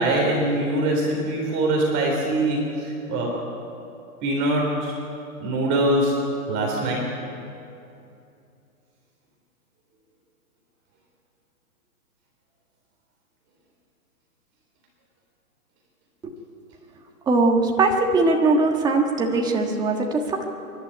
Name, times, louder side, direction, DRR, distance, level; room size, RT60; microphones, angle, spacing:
voice 1, 0.0-3.3 4.2-4.9 5.4-7.1, right 1 dB, 25° right, -1 dB, 3.6 m, -23 dB
voice 2, 17.3-20.4, right 3 dB, 10° right, 2 dB, 1.4 m, -20 dB
24.0 x 11.5 x 10.0 m, 2.7 s
hypercardioid pair, 150°, 45 cm